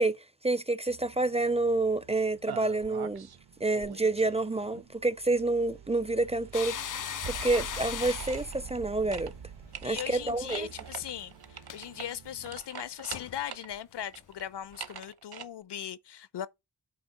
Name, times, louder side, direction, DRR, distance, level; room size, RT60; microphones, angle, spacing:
voice 1, 0.0-3.3 3.6-6.8 7.3-9.3 9.8-10.7, right 2 dB, 15° right, 0.4 m, -28 dB
sound 1, 0.9-12.6, right 7 dB, 85° right, 1.3 m, -48 dB
sound 2, 2.5-3.4 3.7-5.0 7.2-8.9 9.1-9.3 9.7-13.7 14.0-15.5, right 8 dB, 65° right, 1.1 m, -44 dB
sound 3, 6.5-10.0 10.3-10.5 11.6-11.8 12.8-12.9 13.1-13.4 13.7-13.8 14.4-14.5, left 9 dB, 50° left, 0.5 m, -38 dB
voice 2, 9.8-16.5, left 10 dB, 80° left, 0.8 m, -39 dB
8.6 x 3.5 x 5.9 m
wide cardioid pair, 120°, 40 cm